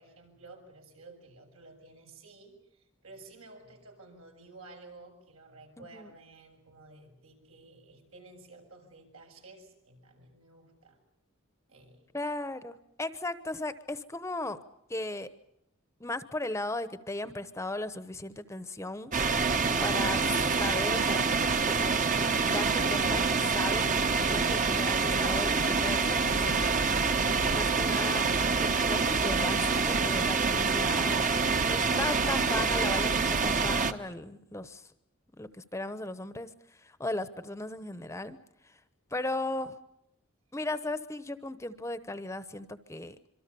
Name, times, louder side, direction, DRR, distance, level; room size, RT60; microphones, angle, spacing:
voice 1, 0.0-11.0 11.7-12.1, right 2 dB, 90° right, 2 dB, 6.9 m, -53 dB
voice 2, 5.8-6.1 12.1-14.6 14.9-15.3 16.0-19.1 19.8-20.2 20.6-21.3 21.6-21.8 22.2-24.0 24.3-26.8 27.5-28.3 28.6-34.9 35.4-38.4 38.6-38.8 39.1-39.8 40.5-43.2, left 2 dB, 15° left, 12 dB, 0.9 m, -36 dB
sound 1, 19.1-33.9, right 4 dB, 40° right, 1.1 m, -26 dB
26.0 x 24.0 x 7.0 m, 0.77 s
head